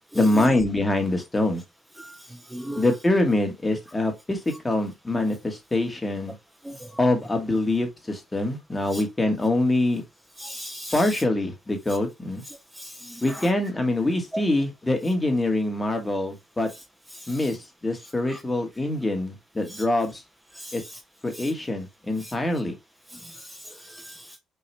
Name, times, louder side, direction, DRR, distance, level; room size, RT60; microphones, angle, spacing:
voice 1, 0.1-1.6 2.8-6.3 7.0-10.0 10.9-12.4 13.2-16.7 17.3-20.2 20.7-20.8 21.2-22.7, left 2 dB, 15° left, 1.2 m, -24 dB
voice 2, 2.5-2.8 6.6-6.9 8.9-9.0 10.4-11.1 12.8-13.5 18.3-18.4 19.7-19.8 20.5-20.7 21.4-21.5 22.2-22.3 23.1-23.3 23.8-24.4, equal, 10° right, 0.6 m, -37 dB
5.6 x 2.4 x 3.2 m
cardioid pair, 125°, 0 cm